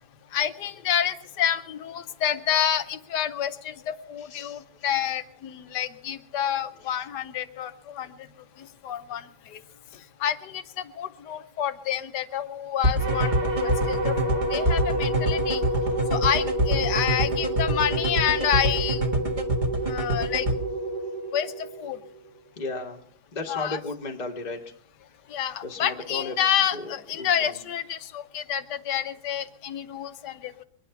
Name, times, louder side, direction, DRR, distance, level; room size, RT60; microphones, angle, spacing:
voice 1, 0.3-8.1 8.8-9.6 10.2-13.3 13.6-15.6 16.1-19.0 19.9-20.5 21.3-22.0 23.5-23.8 25.3-30.6, left 9 dB, 85° left, 9 dB, 1.4 m, -28 dB
voice 2, 4.2-5.0 6.8-7.1 15.8-16.0 22.6-23.1 23.3-24.7 25.5-26.4 26.7-27.6, left 3 dB, 25° left, 1 dB, 1.3 m, -35 dB
sound 1, 12.8-20.5, right 2 dB, 30° right, 1.6 m, -25 dB
sound 2, 13.0-22.3, right 1 dB, 75° right, 2.5 m, -29 dB
23.5 x 9.8 x 5.7 m, 0.67 s
omnidirectional pair, 1.8 m